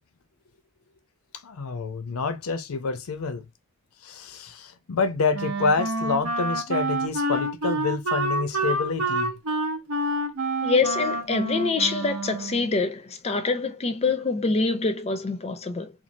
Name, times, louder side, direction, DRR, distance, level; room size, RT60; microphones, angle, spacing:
voice 1, 1.4-3.4 4.0-9.3, left 4 dB, 90° left, 0.6 m, -27 dB
Wind instrument woodwind instrument, 5.3-12.7, right 2 dB, 80° right, 0.7 m, -28 dB
voice 2, 10.6-15.9, left 4 dB, 30° left, 0.5 m, -25 dB
3.0 x 2.4 x 2.6 m
head